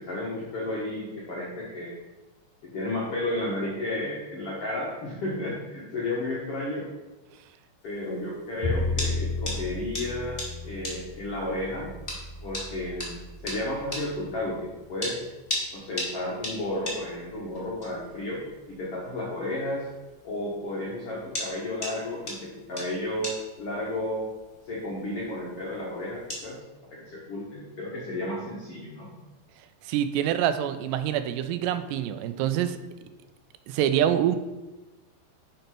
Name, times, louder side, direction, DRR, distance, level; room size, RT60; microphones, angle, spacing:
voice 1, 0.0-1.9 2.7-6.9 7.8-11.9 12.4-15.3 15.7-19.9 20.2-24.3 24.6-26.6 26.9-29.1, left 1 dB, 75° left, -5 dB, 1.3 m, -32 dB
sound 1, 7.8-26.5, left 1 dB, 15° left, 1.3 m, -40 dB
Bowed string instrument, 8.6-14.8, left 2 dB, 65° right, 2.2 m, -34 dB
voice 2, 29.9-32.8 33.7-34.4, right 10 dB, 85° right, 10 dB, 2.8 m, -25 dB
6.7 x 5.3 x 5.9 m, 1.1 s
omnidirectional pair, 4.9 m